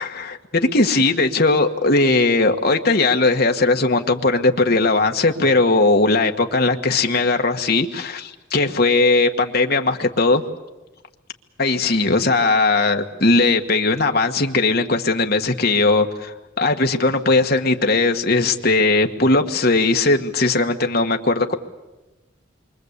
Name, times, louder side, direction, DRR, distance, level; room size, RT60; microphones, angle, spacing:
voice 1, 0.0-10.4 11.6-21.6, left 3 dB, 50° left, 1.7 m, -18 dB
27.5 x 24.5 x 8.3 m
head